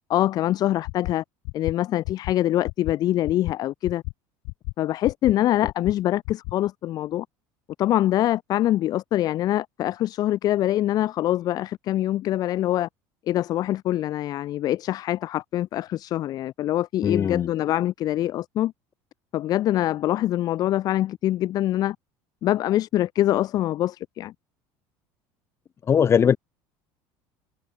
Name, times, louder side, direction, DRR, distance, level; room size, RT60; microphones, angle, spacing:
voice 1, 0.1-1.2 1.5-4.0 4.8-7.2 7.8-12.9 13.3-18.7 19.3-22.0 22.4-24.3, left 13 dB, 45° left, 1.3 m, -24 dB
sound 1, 0.8-1.1 1.4-1.7 2.0-2.3 2.6-2.9 3.2-3.5 3.8-4.1 4.4-4.7 5.0-5.3 5.6-5.9 6.2-6.5, left 35 dB, 75° left, 4.0 m, -31 dB
voice 2, 17.0-17.5 25.9-26.4, left 7 dB, 30° left, 6.2 m, -20 dB
cardioid pair, 135°, 9 cm